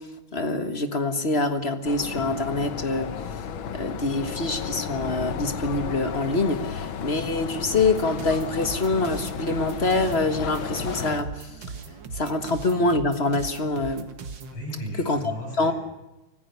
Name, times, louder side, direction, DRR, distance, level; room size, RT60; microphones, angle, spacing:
voice 1, 0.3-3.1 3.7-11.5 12.1-14.1 15.0-15.7, left 2 dB, 30° left, 9 dB, 1.6 m, -25 dB
sound 1, 1.8-11.2, left 7 dB, 70° left, 1.9 m, -33 dB
sound 2, 4.8-7.4, right 1 dB, 20° right, 4.0 m, -43 dB
sound 3, 7.8-14.6, right 4 dB, 60° right, 2.2 m, -38 dB
voice 2, 14.5-15.7, equal, 90° left, 0 dB, 7.9 m, -35 dB
24.5 x 15.5 x 6.8 m, 0.99 s
omnidirectional pair, 2.3 m